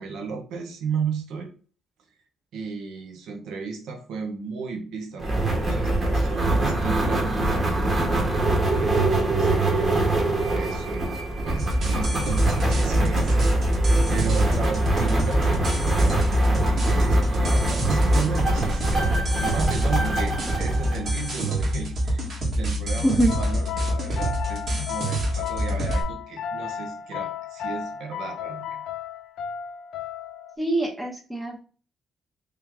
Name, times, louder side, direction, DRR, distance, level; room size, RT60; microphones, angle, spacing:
voice 1, 0.0-1.5 2.5-8.3 8.8-11.1 11.4-13.7 14.0-19.0 19.4-28.8, right 5 dB, 85° right, 4 dB, 0.9 m, -34 dB
sound 1, 5.2-21.7, right 1 dB, 35° right, 1.4 m, -23 dB
sound 2, 11.6-26.0, right 1 dB, 50° right, 1.5 m, -26 dB
voice 2, 23.0-23.3 30.6-31.6, right 1 dB, 15° right, 2 dB, 0.9 m, -24 dB
sound 3, 23.3-30.6, left 8 dB, 75° left, 0.4 m, -34 dB
3.4 x 2.9 x 3.6 m, 0.37 s
cardioid pair, 90°, 0 cm